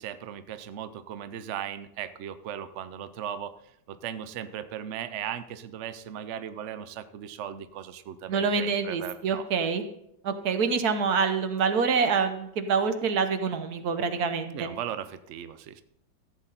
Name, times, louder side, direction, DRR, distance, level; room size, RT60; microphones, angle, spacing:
voice 1, 0.0-3.5 3.9-9.5 14.5-15.8, right 9 dB, 75° right, 12 dB, 0.6 m, -37 dB
voice 2, 8.3-9.8 10.2-14.7, right 5 dB, 60° right, 8 dB, 1.4 m, -26 dB
14.0 x 8.4 x 4.1 m, 0.76 s
omnidirectional pair, 2.0 m